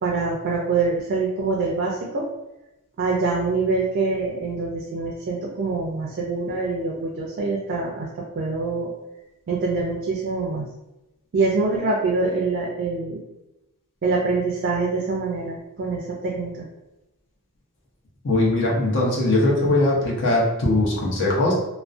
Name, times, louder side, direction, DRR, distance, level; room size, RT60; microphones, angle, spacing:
voice 1, 0.0-2.3 3.0-8.1 8.4-8.9 9.5-10.7 11.3-13.2 14.0-16.7, right 3 dB, 45° right, -2 dB, 0.3 m, -25 dB
voice 2, 18.2-21.5, left 2 dB, 55° left, -4 dB, 0.7 m, -20 dB
2.4 x 2.1 x 2.5 m, 0.95 s
head